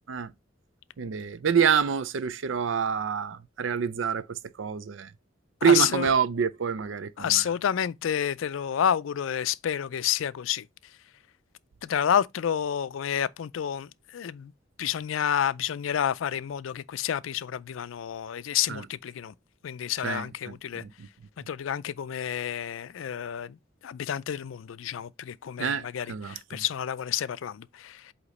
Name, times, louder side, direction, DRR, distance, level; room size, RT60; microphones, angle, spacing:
voice 1, 1.0-5.1 5.6-7.4 18.7-18.8 20.0-21.1 25.6-26.6, right 7 dB, 75° right, 0.5 m, -27 dB
voice 2, 5.6-6.1 7.2-10.7 11.8-14.5 14.8-19.3 19.6-20.8 21.5-23.6 23.8-28.1, left 9 dB, 85° left, 0.4 m, -29 dB
8.1 x 2.9 x 4.1 m
head